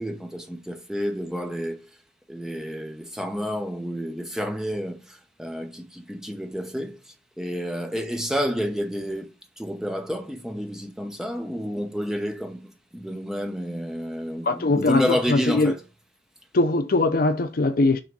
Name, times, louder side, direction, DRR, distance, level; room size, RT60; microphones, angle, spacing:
voice 1, 0.0-1.9 2.3-7.0 7.4-9.3 9.6-12.7 12.9-15.8, equal, 5° right, 0.8 m, -30 dB
voice 2, 14.4-15.7 16.5-18.0, left 2 dB, 50° left, 0.5 m, -21 dB
6.1 x 3.8 x 5.3 m
head